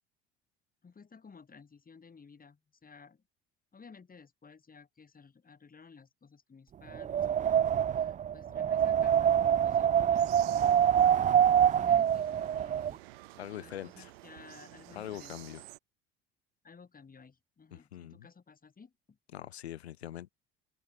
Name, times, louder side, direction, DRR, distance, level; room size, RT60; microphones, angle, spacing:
voice 1, 0.8-3.2 3.7-10.8 11.7-13.0 13.5-15.3 16.6-19.2, left 5 dB, 25° left, 6.7 m, -55 dB
Wind, 6.9-12.9, right 9 dB, 25° right, 0.5 m, -25 dB
sound 1, 10.1-15.8, right 21 dB, 70° right, 3.8 m, -52 dB
voice 2, 13.4-14.1 14.9-15.6 17.7-18.3 19.3-20.3, left 12 dB, 80° left, 1.2 m, -43 dB
open air
figure-of-eight pair, 60°, 32 cm